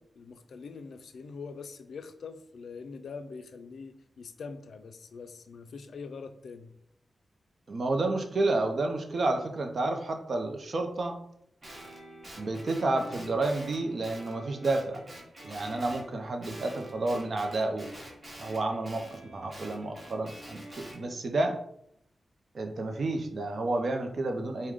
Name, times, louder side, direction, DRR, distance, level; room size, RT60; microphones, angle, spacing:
voice 1, 0.0-6.7, left 5 dB, 80° left, 9 dB, 0.3 m, -43 dB
voice 2, 7.7-11.1 12.4-15.0 15.4-17.9 18.4-21.6 22.5-24.7, right 2 dB, 60° right, 5 dB, 0.5 m, -30 dB
Guitar, 11.6-16.1 16.4-21.0, right 1 dB, 40° right, 1.3 m, -47 dB
4.7 x 2.1 x 3.6 m, 0.74 s
wide cardioid pair, 80°, 0 cm